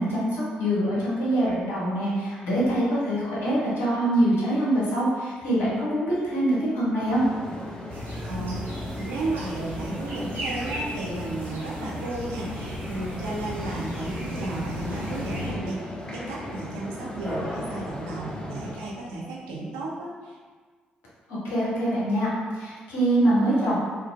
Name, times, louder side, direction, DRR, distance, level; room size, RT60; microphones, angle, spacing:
voice 1, 0.0-7.2 21.3-23.8, right 1 dB, 65° left, -7 dB, 0.9 m, -24 dB
sound 1, 7.0-18.8, left 1 dB, 20° left, 0.6 m, -37 dB
sound 2, 7.9-15.5, equal, 50° right, 0.9 m, -35 dB
voice 2, 8.2-20.4, right 2 dB, 75° right, -4 dB, 0.5 m, -34 dB
2.8 x 2.5 x 2.4 m, 1.5 s
figure-of-eight pair, 40°, 4 cm